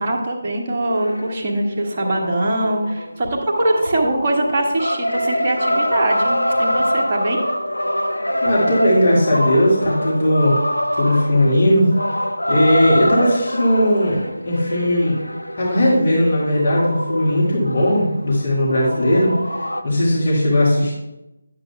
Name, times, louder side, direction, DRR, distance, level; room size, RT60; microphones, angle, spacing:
voice 1, 0.0-7.5, right 1 dB, 30° right, -2 dB, 1.2 m, -22 dB
sound 1, 0.8-19.8, equal, 80° left, 0.6 m, -25 dB
voice 2, 8.4-10.6 11.0-11.9 12.5-15.2 15.6-20.9, equal, 40° left, -5 dB, 1.9 m, -17 dB
10.5 x 7.4 x 2.3 m, 0.95 s
figure-of-eight pair, 155°, 0 cm